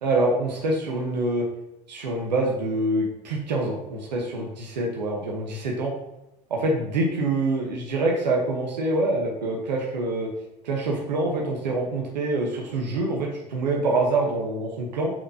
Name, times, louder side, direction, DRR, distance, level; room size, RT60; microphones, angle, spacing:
voice 1, 0.0-1.4 1.9-5.9 6.5-10.3 10.6-15.1, right 2 dB, 90° right, -1 dB, 1.1 m, -25 dB
8.8 x 4.5 x 2.8 m, 0.90 s
hypercardioid pair, 80°, 21 cm